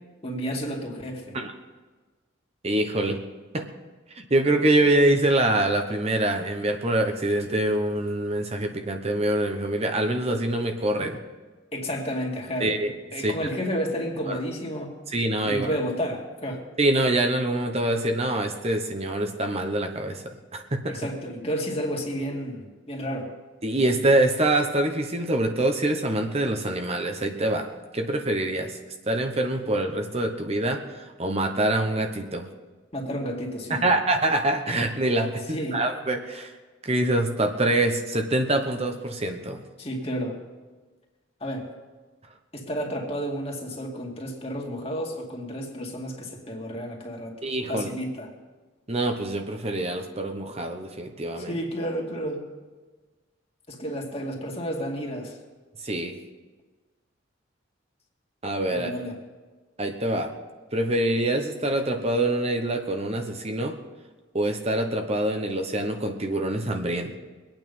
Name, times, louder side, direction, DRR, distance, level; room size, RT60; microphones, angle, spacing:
voice 1, 0.2-1.4 11.7-12.7 13.1-15.0 15.4-16.6 20.9-23.3 32.9-33.9 35.5-35.8 39.8-40.4 41.4-41.7 42.5-47.3 47.7-48.3 51.4-52.4 53.7-55.4 58.7-59.2, equal, 30° left, 0 dB, 2.2 m, -31 dB
voice 2, 2.6-3.2 3.5-3.7 4.1-11.2 12.6-12.9 13.2-13.3 14.3-14.4 15.1-15.7 16.8-21.0 23.6-27.7 27.9-28.8 29.1-32.4 33.7-36.5 36.8-39.6 47.4-47.9 48.9-51.5 55.8-56.2 58.4-58.9 59.8-60.3 60.7-63.8 64.3-67.2, right 1 dB, 35° right, 4 dB, 1.0 m, -25 dB
22.5 x 9.0 x 5.4 m, 1.3 s
head